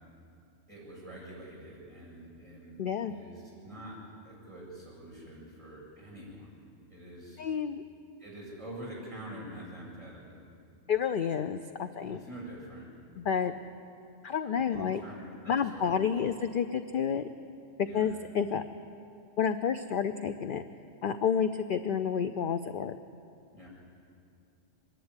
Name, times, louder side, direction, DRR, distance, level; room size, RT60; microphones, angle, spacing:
voice 1, 0.7-4.0 4.2-6.6 6.9-7.4 8.2-10.4 12.1-12.9 14.6-16.2 17.8-18.1 23.5-23.7, right 1 dB, 25° right, -4 dB, 7.6 m, -46 dB
voice 2, 2.8-3.1 7.4-7.8 10.9-12.2 13.2-13.5 14.2-15.0 15.5-17.3 17.9-18.6 19.4-20.6 21.0-22.9, left 7 dB, 55° left, 10 dB, 0.6 m, -30 dB
25.0 x 11.0 x 9.8 m, 2.5 s
omnidirectional pair, 1.3 m